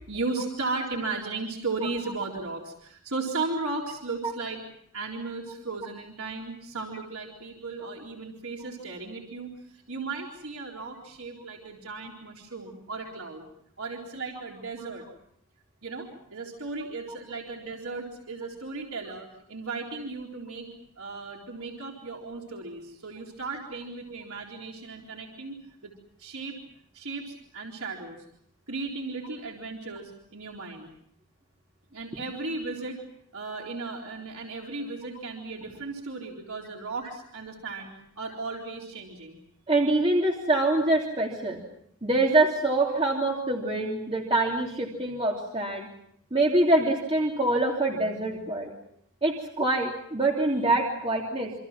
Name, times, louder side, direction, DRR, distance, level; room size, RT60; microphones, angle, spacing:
voice 1, 0.1-4.6 4.9-13.4 13.8-15.0 15.8-20.7 21.0-25.9 26.2-26.6 26.9-28.2 28.7-30.9 31.9-33.0 33.3-39.4, right 3 dB, 75° right, -1 dB, 4.1 m, -36 dB
voice 2, 39.7-41.6 42.0-45.9 46.3-48.7 49.2-51.5, right 2 dB, 25° right, -1 dB, 3.0 m, -25 dB
28.0 x 26.5 x 6.0 m, 0.70 s
head